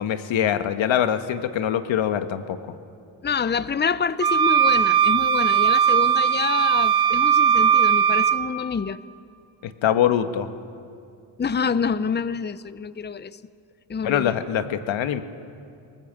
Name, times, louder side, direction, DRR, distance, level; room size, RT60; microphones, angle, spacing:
voice 1, 0.0-2.6 9.6-10.5 14.0-15.2, left 9 dB, 65° left, 1.5 m, -23 dB
voice 2, 3.2-9.0 11.4-13.4 13.9-14.4, left 6 dB, 20° left, 0.8 m, -27 dB
sound 1, 4.2-8.4, right 8 dB, 50° right, 1.2 m, -19 dB
23.5 x 19.5 x 7.5 m
supercardioid pair, 65°, 49 cm